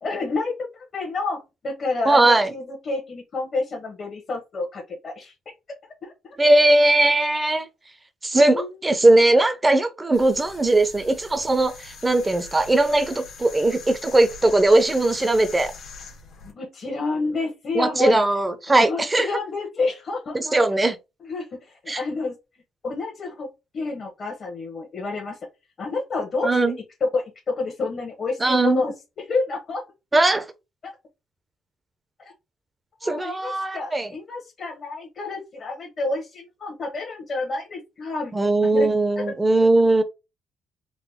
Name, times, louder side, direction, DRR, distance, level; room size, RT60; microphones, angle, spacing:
voice 1, 0.0-5.3 6.0-6.3 8.5-8.7 16.4-18.2 18.8-20.6 21.2-22.4 22.8-23.5 23.7-25.4 25.8-26.6 27.0-28.9 29.3-29.8 33.0-38.3 38.7-38.9 39.2-39.3, left 3 dB, 45° left, 1.2 m, -29 dB
voice 2, 2.1-2.5 6.4-7.7 8.2-15.7 17.7-19.3 20.3-21.0 21.9-22.0 26.4-26.8 28.4-28.8 30.1-30.4 33.0-34.1 38.3-40.0, right 2 dB, 20° right, 0.7 m, -19 dB
sound 1, 10.1-16.5, left 4 dB, 65° left, 1.4 m, -42 dB
3.9 x 2.2 x 3.5 m
cardioid pair, 100°, 0 cm